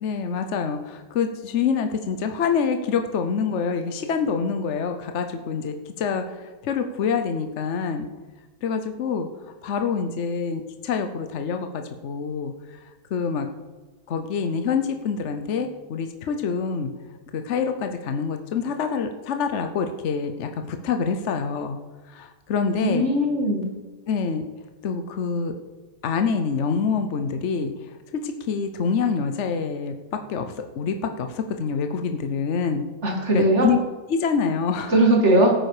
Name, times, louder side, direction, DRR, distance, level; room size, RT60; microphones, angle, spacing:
voice 1, 0.0-8.1 8.6-9.3 9.6-12.5 12.8-13.5 14.1-16.9 17.3-21.8 22.1-23.1 24.1-24.4 24.8-25.5 26.0-29.9 30.3-30.5 30.7-32.9 33.3-33.8 34.1-34.9, left 6 dB, 60° left, 6 dB, 0.7 m, -26 dB
voice 2, 22.8-23.6 33.0-33.7 34.9-35.5, right 1 dB, 35° right, 0 dB, 2.6 m, -19 dB
16.0 x 9.2 x 4.9 m, 1.3 s
omnidirectional pair, 2.1 m